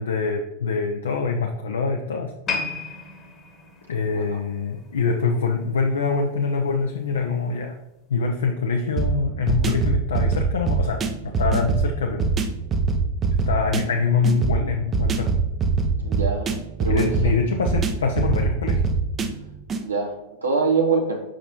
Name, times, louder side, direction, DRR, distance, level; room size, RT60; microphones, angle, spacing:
voice 1, 0.0-2.8 3.9-7.7 8.1-12.3 13.5-15.3 16.9-18.9, left 4 dB, 65° left, 3 dB, 0.5 m, -24 dB
sound 1, 2.5-5.8 6.1-6.3 7.0-7.1, left 5 dB, 25° left, 1.2 m, -33 dB
sound 2, 9.0-19.8, right 4 dB, 25° right, 0.6 m, -24 dB
voice 2, 16.0-17.1 19.8-21.2, right 4 dB, 80° right, 0 dB, 0.9 m, -24 dB
7.5 x 5.3 x 2.9 m, 1.0 s
figure-of-eight pair, 90°, 0 cm